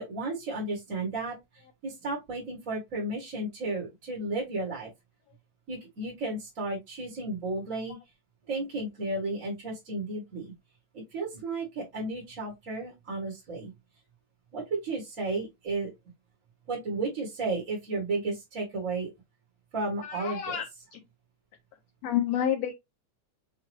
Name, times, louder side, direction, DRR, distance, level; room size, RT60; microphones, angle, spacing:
voice 1, 0.0-4.9 5.7-8.0 8.4-10.5 10.9-13.7 14.5-15.9 16.7-19.1 19.7-20.6, right 2 dB, 35° right, 1.3 m, -33 dB
voice 2, 20.0-20.7 20.9-21.0 22.0-22.7, left 10 dB, 75° left, 1.6 m, -29 dB
5.7 x 2.3 x 3.1 m
omnidirectional pair, 3.5 m